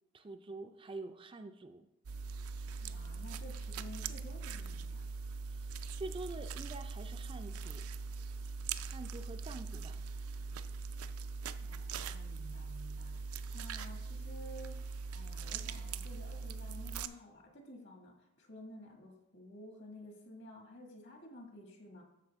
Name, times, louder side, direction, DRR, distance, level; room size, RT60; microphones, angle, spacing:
voice 1, 0.1-1.9 5.5-5.7 6.0-7.9 8.8-10.0, right 2 dB, 25° right, 6 dB, 0.4 m, -46 dB
sound 1, 2.0-17.1, right 5 dB, 85° right, 0.4 m, -41 dB
voice 2, 2.8-5.1 11.6-22.0, left 1 dB, 55° left, 1 dB, 1.9 m, -52 dB
13.0 x 4.7 x 3.5 m, 0.89 s
head